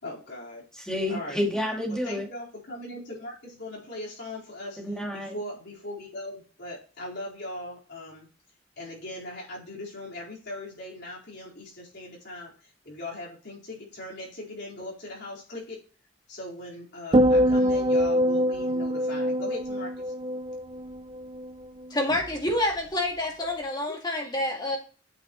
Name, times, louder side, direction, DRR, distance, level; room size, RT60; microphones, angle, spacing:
voice 1, 0.0-0.7 1.1-1.4 1.9-4.8 5.1-8.3 8.8-12.5 12.8-15.8 16.3-20.1, left 1 dB, 60° left, 4.1 m, -39 dB
voice 2, 0.8-2.3 4.8-5.4, left 1 dB, 5° left, 2.2 m, -29 dB
sound 1, 17.1-21.5 21.8-22.2, equal, 25° right, 0.4 m, -24 dB
voice 3, 21.9-24.8, left 1 dB, 20° left, 2.1 m, -28 dB
8.8 x 6.0 x 3.0 m
head